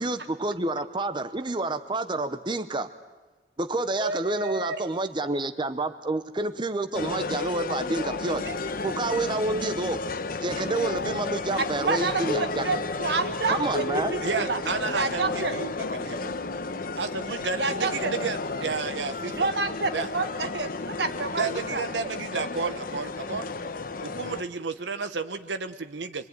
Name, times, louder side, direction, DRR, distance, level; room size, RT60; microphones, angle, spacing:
voice 1, 0.0-2.9 3.6-8.5 8.8-10.0 10.4-12.7 13.5-14.1, right 2 dB, 25° right, 9 dB, 0.8 m, -29 dB
voice 2, 4.0-4.8 8.4-8.6 11.9-12.3 12.6-14.6 14.9-15.5 17.6-18.1 19.3-21.8, right 3 dB, 65° right, 8 dB, 1.8 m, -29 dB
sound 1, 6.9-24.4, left 3 dB, 55° left, 1.0 m, -32 dB
voice 3, 14.2-16.4 17.0-19.5 19.9-20.1 21.4-23.5 24.0-26.3, right 4 dB, 90° right, 8 dB, 1.1 m, -32 dB
25.5 x 23.0 x 9.5 m, 1.2 s
head